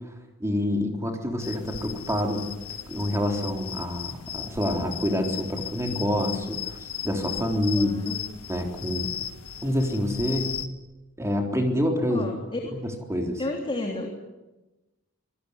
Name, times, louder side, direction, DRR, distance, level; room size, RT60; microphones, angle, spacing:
voice 1, 0.4-2.5 2.9-6.7 7.0-8.0 8.5-9.1 9.6-10.6 11.2-12.3 13.1-13.4, left 1 dB, 15° right, 2 dB, 3.8 m, -27 dB
sound 1, 1.4-10.7, left 9 dB, 70° left, 1.9 m, -37 dB
voice 2, 7.7-8.2 12.1-12.7 13.4-14.1, left 2 dB, 25° left, 1 dB, 3.3 m, -32 dB
25.5 x 20.0 x 9.7 m, 1.1 s
head